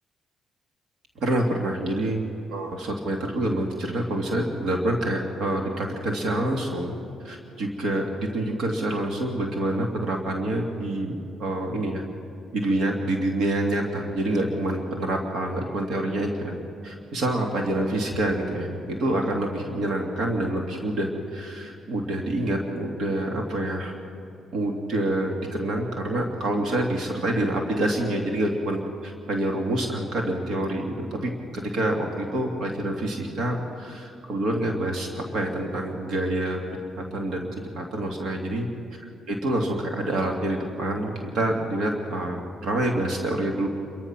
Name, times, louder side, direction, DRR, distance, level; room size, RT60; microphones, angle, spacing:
voice 1, 1.2-7.0 7.2-12.0 12.5-16.5 16.8-23.9 24.5-36.6 37.0-37.4 37.7-38.7 39.0-43.7, right 1 dB, 70° right, 1 dB, 2.5 m, -27 dB
29.5 x 14.5 x 6.1 m, 2.6 s
cardioid pair, 90°, 0 cm